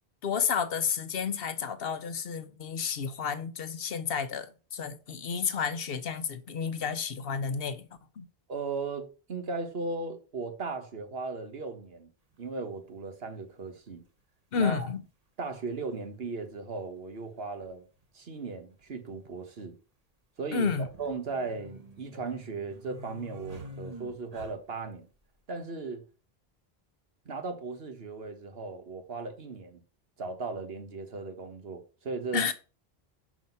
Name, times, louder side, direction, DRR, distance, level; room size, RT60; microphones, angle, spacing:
voice 1, 0.2-7.9 8.2-8.3 14.5-15.0 20.5-20.9 32.3-32.5, left 6 dB, 65° left, 1.0 m, -31 dB
voice 2, 8.5-12.1 12.4-14.0 14.5-14.9 15.4-17.9 18.1-19.8 20.4-20.7 21.0-25.1 25.5-26.0 27.2-29.8 30.2-32.5, right 4 dB, 70° right, 1.5 m, -37 dB
sound 1, 12.3-12.4 13.9-14.0 15.4-15.5 15.7-15.8 17.6-17.8 18.0-18.1 18.8-19.3 20.7-24.9, equal, 40° right, 1.3 m, -47 dB
6.0 x 5.0 x 5.3 m
omnidirectional pair, 1.1 m